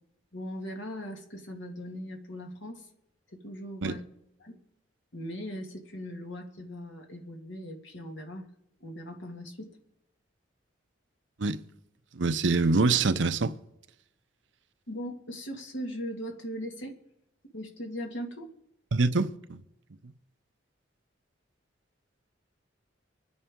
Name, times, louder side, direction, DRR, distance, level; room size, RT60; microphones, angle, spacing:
voice 1, 0.3-2.9 3.3-4.0 4.4-4.6 5.1-8.5 8.8-9.8 14.9-17.0 17.5-18.5, equal, 75° left, 2.2 m, -39 dB
voice 2, 12.1-13.5 18.9-19.6, right 3 dB, 75° right, 0.7 m, -25 dB
25.0 x 9.8 x 3.8 m
head